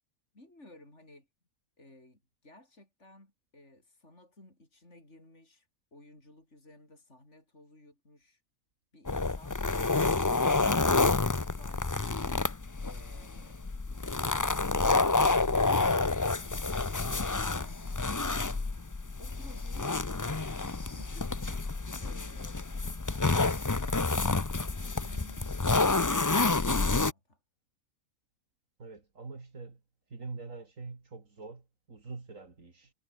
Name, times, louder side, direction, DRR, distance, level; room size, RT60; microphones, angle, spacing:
voice 1, 0.3-1.3 1.8-8.4 8.9-9.6 12.8-13.6 19.2-20.0 20.9-22.7 25.0-27.4, left 1 dB, 50° left, 6.9 m, -56 dB
sound 1, 9.1-27.1, left 3 dB, 25° left, 0.4 m, -29 dB
voice 2, 28.8-29.8 30.1-32.9, right 3 dB, 60° right, 3.2 m, -44 dB
omnidirectional pair, 1.5 m